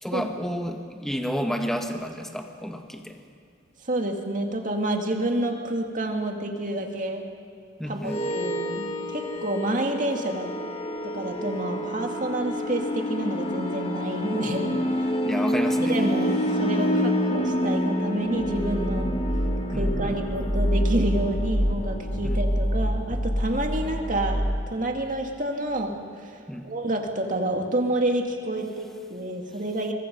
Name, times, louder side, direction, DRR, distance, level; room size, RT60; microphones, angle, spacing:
voice 1, 0.0-3.2 7.8-8.3 15.2-16.1 19.7-20.2 22.2-22.4 26.5-26.7, equal, ahead, 4 dB, 1.4 m, -31 dB
voice 2, 3.8-7.2 7.9-8.0 8.3-10.5 11.0-14.8 15.8-19.1 19.7-24.4 24.7-26.4 26.6-29.9, right 1 dB, 45° right, 2 dB, 2.3 m, -28 dB
sound 1, 8.0-24.6, equal, 30° left, 1.7 m, -27 dB
23.5 x 23.0 x 5.4 m, 2.3 s
head